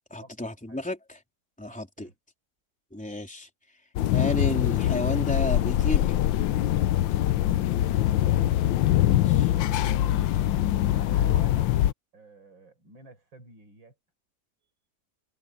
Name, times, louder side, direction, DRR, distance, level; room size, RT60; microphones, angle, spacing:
voice 1, 0.1-1.2 1.6-2.1 2.9-3.5 4.1-6.2 9.0-9.5, left 1 dB, 5° left, 3.7 m, -32 dB
voice 2, 1.7-2.1 7.1-8.2 11.0-11.7 12.1-13.9, right 2 dB, 80° right, 7.1 m, -51 dB
sound 1, 4.0-11.9, left 13 dB, 80° left, 1.4 m, -23 dB
omnidirectional pair, 2.1 m